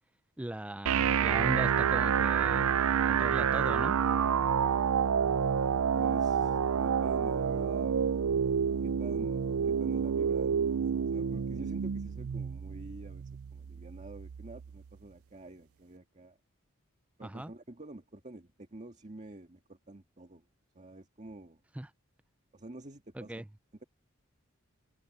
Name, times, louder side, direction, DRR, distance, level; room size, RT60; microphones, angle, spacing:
voice 1, 0.4-2.6 3.1-4.0 17.2-17.5 21.8-21.9 23.1-23.5, right 1 dB, 5° right, 0.3 m, -38 dB
sound 1, 0.9-14.8, right 7 dB, 75° right, 0.4 m, -29 dB
voice 2, 5.9-8.1 8.8-10.7 11.1-16.4 17.2-20.4 20.8-21.6 22.5-23.4, right 2 dB, 35° right, 1.8 m, -48 dB
head